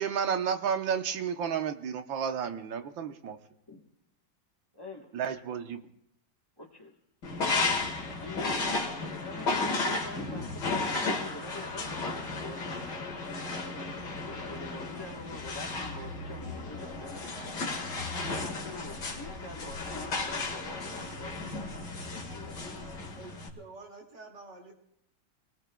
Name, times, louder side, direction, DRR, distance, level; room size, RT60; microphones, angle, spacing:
voice 1, 0.0-3.4 5.1-5.8, right 7 dB, 85° right, 7 dB, 1.7 m, -31 dB
voice 2, 4.7-5.2 6.6-6.9 8.2-8.8 9.2-13.0 14.3-17.6 18.1-22.7, left 2 dB, 15° left, 0 dB, 1.0 m, -46 dB
sound 1, 7.2-23.5, left 3 dB, 60° left, 2.3 m, -34 dB
voice 3, 23.2-24.7, right 3 dB, 65° right, 0 dB, 3.0 m, -48 dB
25.5 x 19.0 x 2.3 m, 0.75 s
omnidirectional pair, 2.0 m